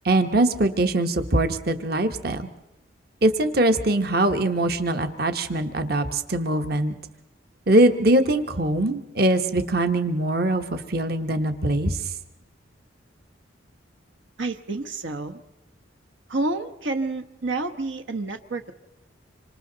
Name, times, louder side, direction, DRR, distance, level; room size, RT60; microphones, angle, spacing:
voice 1, 0.0-2.5 3.2-6.9 7.7-12.1, right 1 dB, 50° right, 8 dB, 1.2 m, -22 dB
voice 2, 14.4-15.4 16.3-18.7, right 2 dB, 75° right, 7 dB, 1.1 m, -29 dB
26.5 x 25.5 x 4.0 m, 0.94 s
head